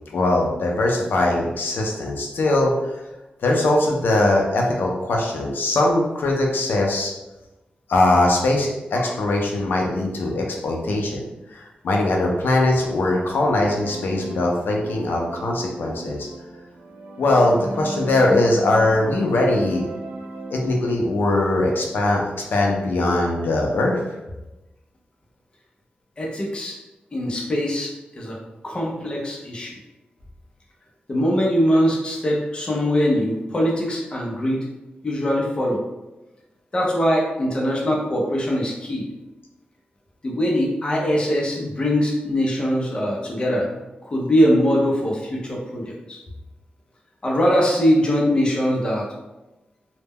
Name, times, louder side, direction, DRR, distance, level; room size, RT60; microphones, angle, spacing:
voice 1, 0.1-3.0 3.4-7.1 7.9-16.3 17.2-19.9 20.5-22.2 22.5-24.0, left 2 dB, 90° left, -1 dB, 0.4 m, -21 dB
sound 1, 12.9-20.8, right 2 dB, 75° right, 0.3 m, -36 dB
voice 2, 26.2-26.8 27.1-27.9 28.2-28.4 28.6-29.8 31.1-34.6 35.0-35.8 36.7-39.0 40.2-43.7 44.0-46.2 47.2-49.1, equal, 30° left, -2 dB, 0.5 m, -22 dB
2.1 x 2.1 x 3.4 m, 1.0 s
wide cardioid pair, 160°, 3 cm